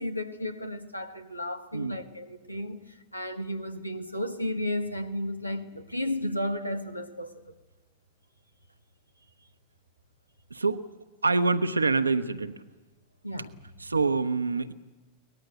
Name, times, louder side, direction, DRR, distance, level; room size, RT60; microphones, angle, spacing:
voice 1, 0.0-7.3 13.2-13.6, left 1 dB, 85° left, 1.4 m, -33 dB
voice 2, 10.5-10.9 11.2-12.5 13.8-14.7, right 3 dB, 80° right, 1.0 m, -25 dB
23.0 x 19.5 x 8.9 m
figure-of-eight pair, 90°, 0 cm